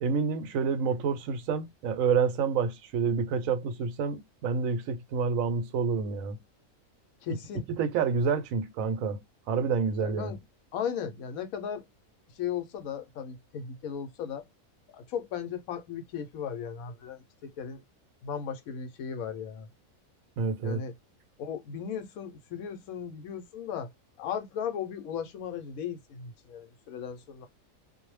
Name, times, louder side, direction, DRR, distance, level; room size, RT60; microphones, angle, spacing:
voice 1, 0.0-6.4 7.7-10.4 20.4-20.8, right 5 dB, 75° right, 1.0 m, -28 dB
voice 2, 7.2-7.7 10.0-10.4 10.7-11.8 12.3-14.4 14.9-17.8 18.2-19.7 20.6-20.9 21.4-23.9 24.2-27.5, left 8 dB, 80° left, 1.0 m, -36 dB
2.5 x 2.0 x 3.0 m
omnidirectional pair, 1.5 m